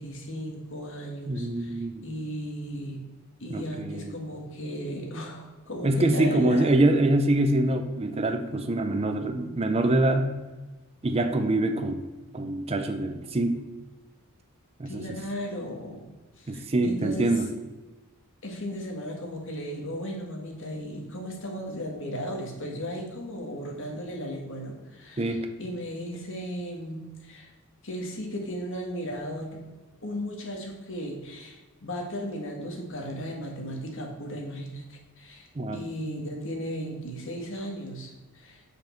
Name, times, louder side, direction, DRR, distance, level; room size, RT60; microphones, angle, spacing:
voice 1, 0.0-3.0 3.4-6.7 14.8-16.1 16.4-17.3 18.4-27.5 27.8-29.6 30.0-38.6, equal, 60° left, 1 dB, 1.5 m, -36 dB
voice 2, 1.3-1.9 3.5-4.1 5.8-10.3 11.0-12.1 12.3-13.6 14.8-15.0 16.5-17.5 25.2-25.5 35.6-35.8, right 1 dB, 30° right, 7 dB, 0.5 m, -25 dB
7.0 x 5.1 x 4.5 m, 1.2 s
head